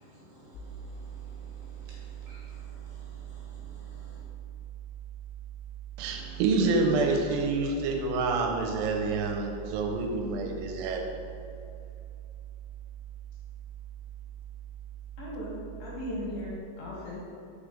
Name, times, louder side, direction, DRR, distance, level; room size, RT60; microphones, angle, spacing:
voice 1, 0.0-4.2, equal, 70° right, -6 dB, 3.2 m, -54 dB
sound 1, 0.5-16.6, right 11 dB, 80° left, 2.8 m, -43 dB
voice 2, 6.0-11.0, right 3 dB, 90° right, 2 dB, 3.2 m, -27 dB
voice 3, 15.2-15.5 15.8-17.3, left 1 dB, 65° left, -5 dB, 2.5 m, -37 dB
6.2 x 4.9 x 5.1 m, 2.5 s
omnidirectional pair, 5.4 m